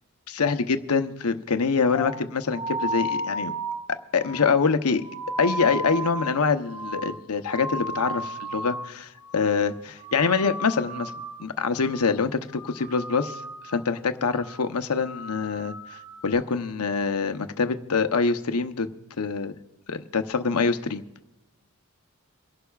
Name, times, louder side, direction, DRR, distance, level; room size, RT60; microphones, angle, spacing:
voice 1, 0.3-3.5 3.9-5.1 5.4-11.1 11.4-13.4 13.7-18.9 19.2-19.6 19.9-21.0, left 5 dB, 85° left, 9 dB, 0.8 m, -25 dB
sound 1, 1.9-8.9 9.2-9.7 10.0-11.4 11.7-12.2 12.5-13.9 14.3-14.6 15.0-16.3, equal, 15° right, 2.4 m, -34 dB
28.0 x 11.5 x 2.4 m, 0.95 s
head